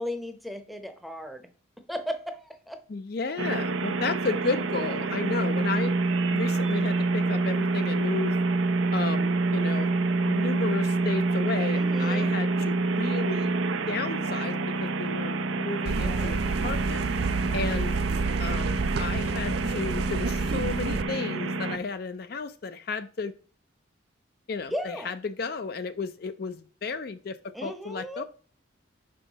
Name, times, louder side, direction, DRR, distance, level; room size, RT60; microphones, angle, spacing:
voice 1, 0.0-1.4 1.9-2.8 11.7-12.4 16.0-16.4 24.7-25.1 27.5-28.2, equal, ahead, 6 dB, 0.7 m, -36 dB
voice 2, 2.9-5.9 6.3-8.4 8.9-13.6 13.9-17.0 17.5-17.9 18.4-23.3 24.5-28.2, left 4 dB, 50° left, 10 dB, 0.4 m, -33 dB
sound 1, 3.4-21.8, right 3 dB, 85° right, 0.7 m, -27 dB
sound 2, 15.9-21.0, right 4 dB, 55° right, 0.4 m, -30 dB
5.5 x 5.4 x 4.0 m, 0.41 s
head